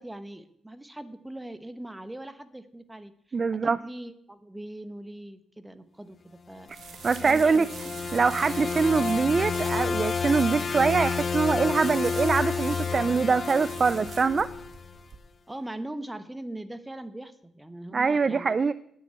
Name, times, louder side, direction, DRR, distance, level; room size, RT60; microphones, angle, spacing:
voice 1, 0.0-3.1 3.6-6.7 7.2-7.9 15.5-18.5, right 1 dB, 10° right, 12 dB, 1.1 m, -40 dB
voice 2, 3.3-3.8 7.0-7.7 8.1-14.5 17.9-18.7, right 5 dB, 35° right, 16 dB, 0.4 m, -24 dB
sound 1, 6.7-15.2, right 7 dB, 55° right, 1.1 m, -44 dB
sound 2, 6.8-15.0, left 5 dB, 40° left, 0.5 m, -30 dB
9.4 x 7.2 x 8.8 m, 0.71 s
cardioid pair, 90°, 0 cm